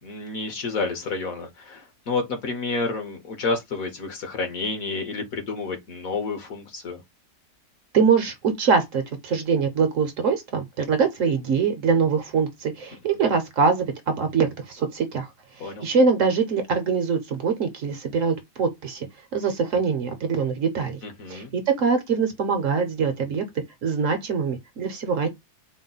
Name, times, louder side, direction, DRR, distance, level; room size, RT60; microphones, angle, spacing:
voice 1, 0.0-7.0 15.6-15.9 21.0-21.5, left 3 dB, 60° left, 1.4 m, -30 dB
voice 2, 7.9-15.3 15.6-19.1 19.3-21.0 21.3-23.4 23.8-25.3, right 5 dB, 60° right, 1.0 m, -23 dB
4.3 x 2.1 x 3.9 m
omnidirectional pair, 1.7 m